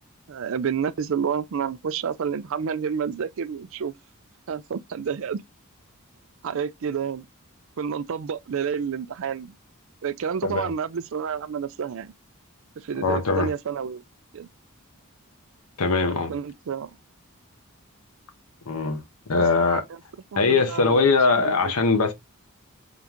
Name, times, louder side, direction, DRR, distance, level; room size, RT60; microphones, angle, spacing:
voice 1, 0.3-3.9 4.5-5.4 6.4-7.3 7.8-9.5 10.0-12.1 12.8-14.0 14.3-14.5 16.0-17.0 19.3-20.0 20.3-21.1 21.6-21.7, right 7 dB, 65° right, 0.4 m, -29 dB
voice 2, 13.0-13.5 15.8-16.3 18.7-19.0 19.3-19.8 20.4-22.1, left 4 dB, 85° left, 0.8 m, -21 dB
3.7 x 2.9 x 3.5 m
head